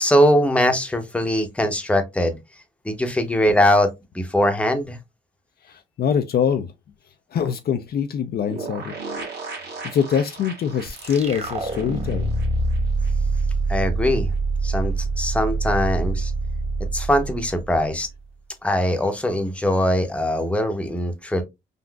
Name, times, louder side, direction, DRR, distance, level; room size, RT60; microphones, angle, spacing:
voice 1, 0.0-2.4 2.8-5.0 13.7-14.3 14.6-16.3 16.9-18.1 18.6-21.4, left 1 dB, 5° left, 0.7 m, -21 dB
voice 2, 5.6-6.7 7.3-8.9 9.8-12.3, left 8 dB, 50° left, 0.4 m, -24 dB
sound 1, 8.5-13.1 13.4-13.5 13.7-13.8, right 3 dB, 55° right, 1.3 m, -36 dB
sound 2, 10.9-18.1, right 3 dB, 30° right, 1.0 m, -25 dB
3.8 x 2.4 x 2.2 m
cardioid pair, 90°, 20 cm